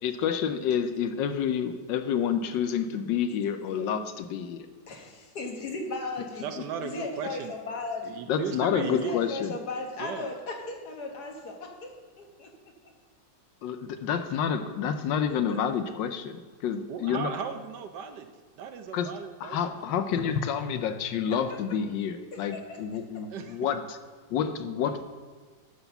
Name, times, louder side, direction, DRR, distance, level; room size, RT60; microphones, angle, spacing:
voice 1, 0.0-4.7 6.6-6.7 8.3-9.5 13.6-17.3 18.9-19.1 19.4-24.0 24.3-25.0, left 8 dB, 80° left, 9 dB, 1.3 m, -29 dB
voice 2, 3.6-3.9 4.9-6.5 6.8-8.2 8.9-11.9 12.2-12.5 15.5-15.6 21.5-21.8 22.5-22.8, left 3 dB, 60° left, 2 dB, 1.7 m, -36 dB
voice 3, 6.4-7.5 8.0-9.2 10.0-10.3 16.9-19.6 23.3-23.6, right 6 dB, 70° right, 7 dB, 1.2 m, -36 dB
11.0 x 4.0 x 6.8 m, 1.4 s
omnidirectional pair, 2.0 m